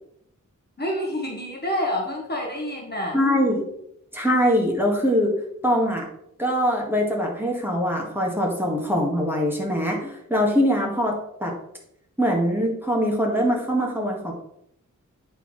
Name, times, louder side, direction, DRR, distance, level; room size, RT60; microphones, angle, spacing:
voice 1, 0.8-3.2, left 1 dB, 35° left, -1 dB, 1.3 m, -28 dB
voice 2, 3.1-3.6 4.1-5.3 5.6-6.1 6.4-11.5 12.2-14.3, equal, 5° right, -1 dB, 1.9 m, -22 dB
9.6 x 4.4 x 3.2 m, 0.74 s
wide cardioid pair, 100°, 31 cm